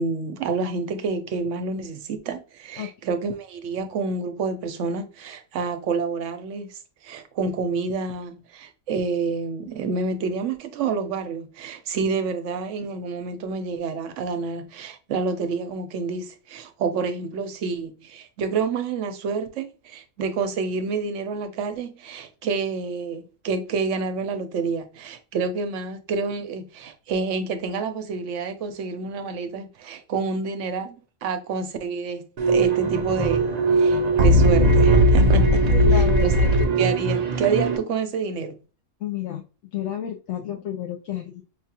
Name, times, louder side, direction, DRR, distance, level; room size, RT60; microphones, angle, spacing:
voice 1, 0.0-35.6 35.9-36.5 36.8-38.6, right 4 dB, 70° right, 0.9 m, -28 dB
sound 1, 32.4-37.8, right 1 dB, 55° right, 0.4 m, -18 dB
voice 2, 35.7-36.5 39.0-39.4 39.7-41.4, left 10 dB, 75° left, 0.9 m, -31 dB
5.6 x 2.3 x 2.8 m
omnidirectional pair, 1.4 m